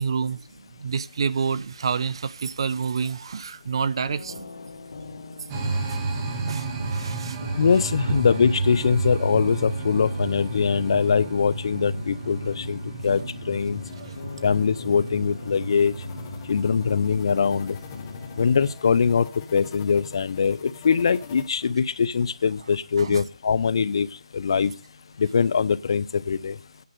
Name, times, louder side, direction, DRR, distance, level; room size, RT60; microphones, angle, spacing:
voice 1, 0.0-4.5 5.9-6.0 6.4-7.4 8.0-8.2 13.9-14.2 23.0-23.2, right 6 dB, 45° right, 0.6 m, -28 dB
sound 1, 4.0-18.7, left 3 dB, 60° left, 1.8 m, -39 dB
sound 2, 5.5-18.8, right 3 dB, 20° right, 1.3 m, -32 dB
voice 2, 7.6-13.2 13.5-13.8 14.4-15.9 16.5-17.8 18.4-24.1 24.3-24.7 25.2-26.5, left 6 dB, 45° left, 0.5 m, -22 dB
sound 3, 13.6-21.5, left 7 dB, 20° left, 0.8 m, -47 dB
9.4 x 5.4 x 7.7 m
hypercardioid pair, 165°, 4 cm